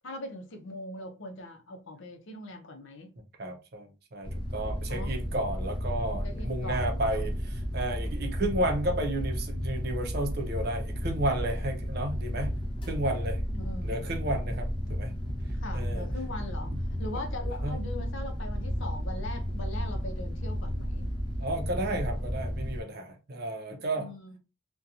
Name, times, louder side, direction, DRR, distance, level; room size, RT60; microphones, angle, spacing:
voice 1, 0.0-3.1 4.9-5.1 6.2-7.2 13.5-14.1 15.5-21.1 23.3-23.5 24.0-24.4, left 2 dB, 75° left, 0.6 m, -41 dB
voice 2, 3.4-12.5 12.9-13.4 13.8-15.1 15.7-16.1 17.6-17.8 21.4-24.1, right 1 dB, 50° right, 0.6 m, -32 dB
sound 1, 4.2-22.8, equal, 25° left, 0.5 m, -33 dB
2.7 x 2.2 x 2.4 m
head